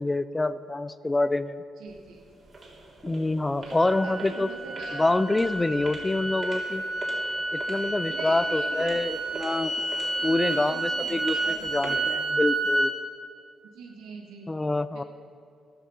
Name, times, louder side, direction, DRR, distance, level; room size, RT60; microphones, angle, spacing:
voice 1, 0.0-1.6 3.0-4.5 4.9-6.8 7.5-9.7 10.2-12.9 14.5-15.0, left 2 dB, 15° left, 15 dB, 0.5 m, -26 dB
voice 2, 1.8-2.2 3.6-5.0 8.1-9.0 10.2-11.9 13.7-14.5 14.9-15.0, right 4 dB, 90° right, 1 dB, 1.5 m, -42 dB
sound 1, 1.9-12.1, right 2 dB, 45° right, 3.2 m, -43 dB
sound 2, 3.8-12.9, right 2 dB, 25° right, 2.5 m, -30 dB
14.0 x 12.5 x 5.6 m, 2.5 s
cardioid pair, 90°, 0 cm